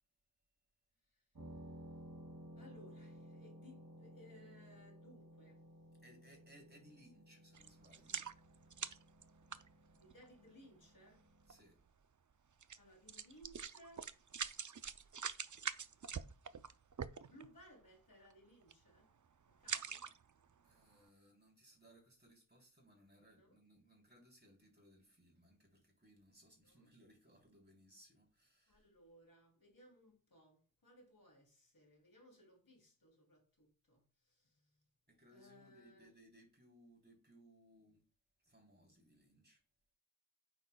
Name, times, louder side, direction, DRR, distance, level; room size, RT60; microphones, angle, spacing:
sound 1, 1.4-11.6, right 1 dB, 75° right, 2.5 m, -57 dB
voice 1, 2.5-5.6 9.9-11.2 12.8-14.2 16.0-16.2 17.2-19.1 19.5-20.1 20.5-20.6 23.4-23.6 26.6-26.9 28.7-34.8 35.3-36.1, equal, 85° left, 3.2 m, -63 dB
voice 2, 6.0-8.3 8.6-8.7 11.5-11.8 20.6-28.9 35.1-38.0 38.4-39.6, right 1 dB, 30° right, 3.7 m, -65 dB
sound 2, 7.5-10.3 11.1-11.2 11.5-11.6 12.6-12.8 13.1-17.6 18.1-18.3 18.6-19.0 19.5-20.4 20.9-21.0, right 6 dB, 60° right, 0.5 m, -45 dB
8.8 x 6.3 x 2.3 m
wide cardioid pair, 50°, 34 cm